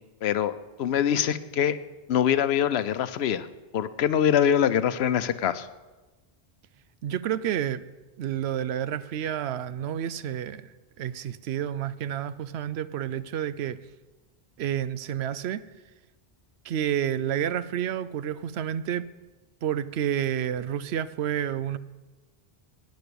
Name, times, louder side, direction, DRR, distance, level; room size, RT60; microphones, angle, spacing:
voice 1, 0.2-0.5 0.8-1.8 2.1-3.5 3.7-5.7, left 9 dB, 90° left, 0.9 m, -24 dB
voice 2, 7.0-7.8 8.2-13.8 14.6-15.6 16.6-19.1 19.6-21.8, right 10 dB, 85° right, 0.8 m, -30 dB
10.5 x 9.5 x 6.9 m
omnidirectional pair, 1.1 m